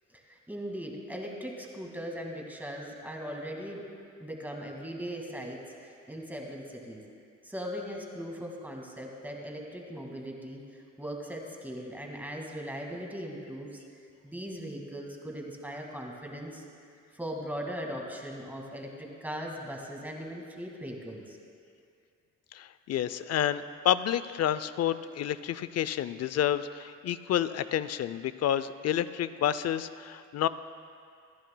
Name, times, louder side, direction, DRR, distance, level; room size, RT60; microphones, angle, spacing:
voice 1, 0.1-3.8 4.2-7.0 7.4-13.8 14.2-16.6 17.1-21.4, equal, 5° right, 0 dB, 1.9 m, -39 dB
voice 2, 22.5-30.5, left 10 dB, 55° left, 14 dB, 0.5 m, -29 dB
26.0 x 10.5 x 2.2 m, 2.3 s
cardioid pair, 90°, 30 cm